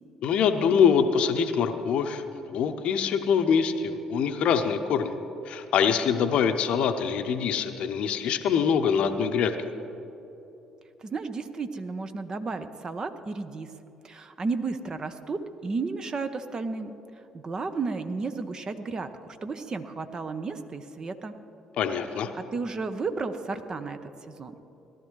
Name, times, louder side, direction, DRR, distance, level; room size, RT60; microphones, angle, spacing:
voice 1, 0.2-5.2 5.5-9.5 21.8-22.3, left 7 dB, 60° left, 8 dB, 0.7 m, -24 dB
voice 2, 11.0-13.7 14.0-16.9 17.3-21.3 22.3-24.5, right 4 dB, 35° right, 9 dB, 0.8 m, -33 dB
18.0 x 12.0 x 3.2 m, 3.0 s
figure-of-eight pair, 50°, 2 cm